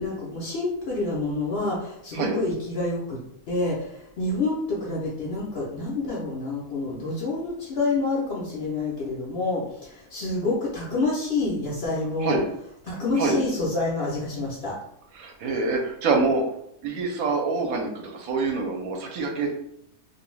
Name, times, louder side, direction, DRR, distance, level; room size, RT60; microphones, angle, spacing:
voice 1, 0.0-3.2 3.5-12.4 12.8-14.8, left 3 dB, 60° left, -4 dB, 0.7 m, -28 dB
voice 2, 15.1-16.4 16.8-19.5, right 4 dB, 75° right, 2 dB, 1.0 m, -25 dB
2.5 x 2.2 x 3.1 m, 0.74 s
omnidirectional pair, 1.5 m